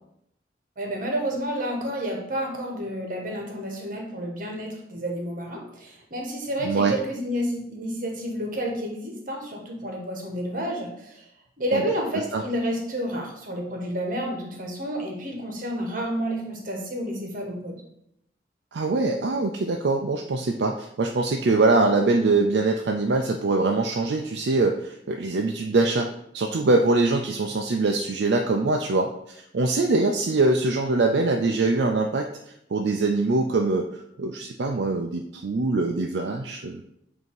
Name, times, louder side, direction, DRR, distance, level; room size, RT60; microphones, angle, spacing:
voice 1, 0.8-11.2 11.6-17.8, equal, 50° right, 1 dB, 1.3 m, -30 dB
voice 2, 18.7-32.3 32.7-36.8, right 3 dB, 70° right, 2 dB, 0.5 m, -23 dB
7.8 x 2.8 x 4.7 m, 0.77 s
head